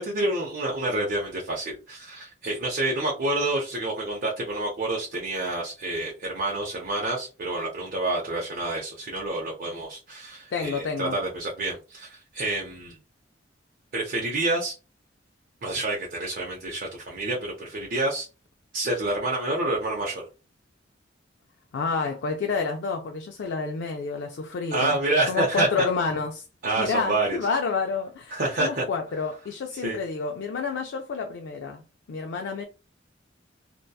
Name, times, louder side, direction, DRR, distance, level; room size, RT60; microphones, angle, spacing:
voice 1, 0.0-13.0 13.9-14.7 15.6-18.3 18.7-20.3 24.7-25.7 26.6-27.4 28.3-28.8 29.8-30.0, right 2 dB, 50° right, 0.6 m, -28 dB
voice 2, 10.5-11.2 21.7-25.0 25.3-26.4 26.8-32.7, left 4 dB, 65° left, 0.3 m, -29 dB
2.7 x 2.2 x 2.2 m
head